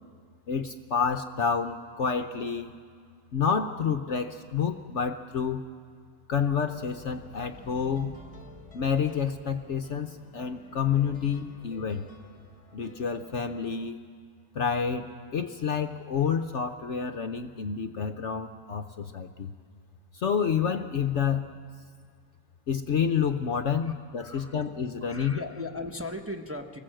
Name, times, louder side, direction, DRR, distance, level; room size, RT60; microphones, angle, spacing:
voice 1, 0.5-2.7 3.3-5.6 6.3-8.1 8.7-12.1 12.7-14.0 14.5-19.5 20.1-21.5 22.7-25.4, left 7 dB, 55° left, 8 dB, 0.9 m, -29 dB
sound 1, 6.4-13.8, left 2 dB, 25° left, 1.4 m, -51 dB
voice 2, 24.2-24.7 25.0-26.8, left 2 dB, 10° right, 2 dB, 0.9 m, -38 dB
26.5 x 20.0 x 7.7 m, 2.1 s
omnidirectional pair, 1.6 m